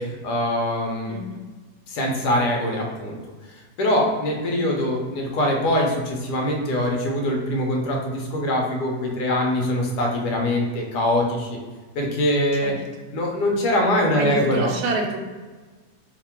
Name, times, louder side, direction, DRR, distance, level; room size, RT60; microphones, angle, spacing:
voice 1, 0.0-1.1 1.9-3.2 3.8-11.6 11.9-12.7 13.1-14.7, left 1 dB, 85° left, 0 dB, 1.3 m, -23 dB
voice 2, 1.1-1.4 12.6-12.7 14.2-15.2, right 2 dB, 80° right, 2 dB, 1.1 m, -27 dB
3.3 x 2.2 x 4.3 m, 1.4 s
omnidirectional pair, 1.7 m